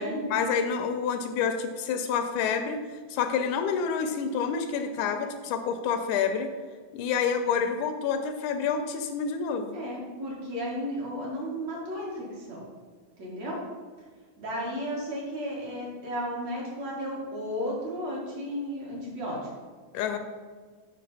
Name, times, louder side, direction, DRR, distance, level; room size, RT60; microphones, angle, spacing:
voice 1, 0.0-2.8 3.1-6.5 6.9-9.8 19.9-20.2, left 6 dB, 80° left, 6 dB, 1.9 m, -28 dB
voice 2, 9.7-12.6 13.2-13.6 14.4-19.4, equal, 60° right, -4 dB, 2.6 m, -34 dB
7.5 x 5.4 x 4.1 m, 1.5 s
omnidirectional pair, 3.6 m